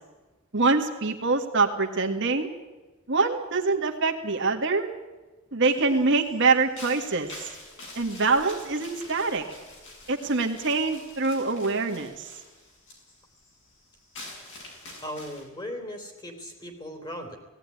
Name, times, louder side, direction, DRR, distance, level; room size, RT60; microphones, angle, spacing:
voice 1, 0.5-2.5 3.1-4.9 5.5-7.3 8.0-9.5 10.1-12.3, right 3 dB, 60° right, 4 dB, 1.9 m, -24 dB
sound 1, 5.7-15.4, left 2 dB, 60° left, 7.5 m, -46 dB
voice 2, 15.0-17.4, equal, 20° left, 4 dB, 3.7 m, -37 dB
18.0 x 17.0 x 9.9 m, 1.2 s
head